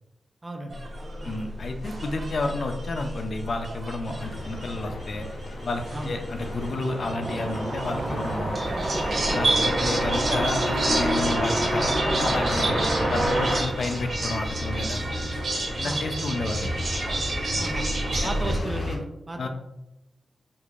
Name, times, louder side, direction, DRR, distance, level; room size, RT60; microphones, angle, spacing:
voice 1, 0.4-0.9 1.2-1.5 4.1-4.2 5.9-6.1 9.3-9.4 15.8-16.0 17.6-17.9 18.2-19.5, right 1 dB, 20° right, 4 dB, 0.3 m, -35 dB
sound 1, 0.7-18.6, right 2 dB, 50° right, 0.8 m, -31 dB
voice 2, 1.2-5.3 5.6-8.6 9.3-12.8 13.1-15.1 15.8-16.7 18.2-18.6 19.4-19.5, left 2 dB, 50° left, 5 dB, 0.4 m, -31 dB
sound 2, 4.1-19.0, left 1 dB, 90° left, 0.7 m, -36 dB
sound 3, 6.4-14.7, right 1 dB, 85° right, 1.0 m, -27 dB
4.7 x 2.4 x 2.4 m, 0.93 s
wide cardioid pair, 170°, 0 cm